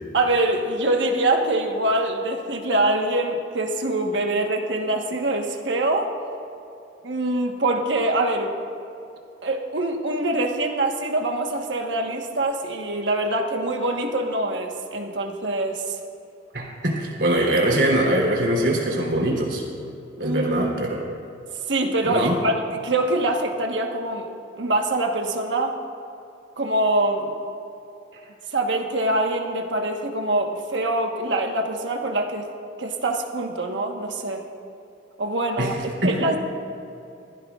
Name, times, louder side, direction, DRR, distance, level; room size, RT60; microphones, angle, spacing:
voice 1, 0.1-6.1 7.0-8.5 9.4-16.0 20.2-21.0 21.7-24.3 24.6-25.8 26.6-27.4 28.5-32.5 32.8-34.4 35.2-36.4, right 2 dB, 90° right, 2 dB, 1.3 m, -24 dB
voice 2, 16.5-19.6 20.2-21.1 22.0-22.4 35.6-35.7 36.0-36.3, right 1 dB, 70° right, -3 dB, 3.3 m, -22 dB
21.0 x 14.5 x 2.4 m, 2.7 s
head